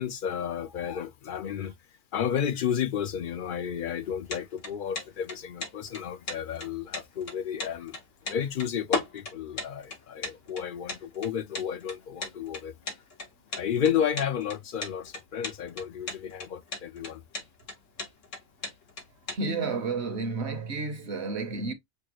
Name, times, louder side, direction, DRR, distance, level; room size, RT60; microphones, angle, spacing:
voice 1, 0.0-1.7 2.1-8.0 8.3-12.7 13.5-17.2, left 8 dB, 60° left, 0.6 m, -32 dB
sound 1, 4.0-19.4, left 3 dB, 90° left, 1.8 m, -37 dB
voice 2, 19.3-21.7, right 3 dB, 65° right, 1.1 m, -31 dB
6.7 x 2.3 x 2.9 m
omnidirectional pair, 1.2 m